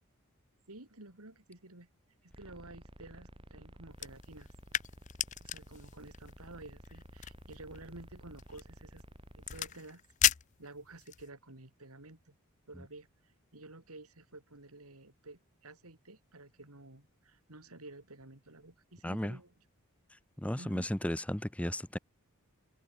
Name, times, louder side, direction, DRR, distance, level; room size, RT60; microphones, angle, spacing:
voice 1, 0.7-1.9 2.2-4.5 5.4-9.0 9.4-12.3 12.7-13.1 13.5-19.5 20.6-20.9, right 2 dB, 85° right, 3.5 m, -52 dB
sound 1, 2.3-9.7, right 1 dB, 25° right, 2.3 m, -53 dB
sound 2, 3.9-11.3, left 12 dB, 35° left, 0.4 m, -37 dB
voice 2, 19.0-19.4 20.4-22.0, equal, 5° left, 0.8 m, -34 dB
head